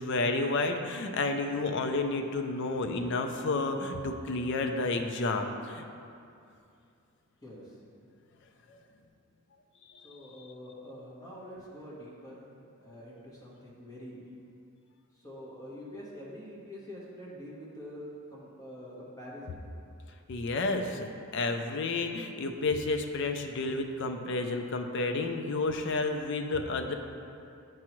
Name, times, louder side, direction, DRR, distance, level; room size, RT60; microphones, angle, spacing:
voice 1, 0.0-5.8 8.7-8.8 9.9-10.0 20.3-26.9, left 3 dB, 55° left, 6 dB, 0.5 m, -31 dB
voice 2, 7.4-7.7 10.0-12.5 12.8-14.4 15.2-19.6, equal, 15° left, -6 dB, 1.3 m, -45 dB
8.6 x 4.7 x 3.0 m, 2.5 s
head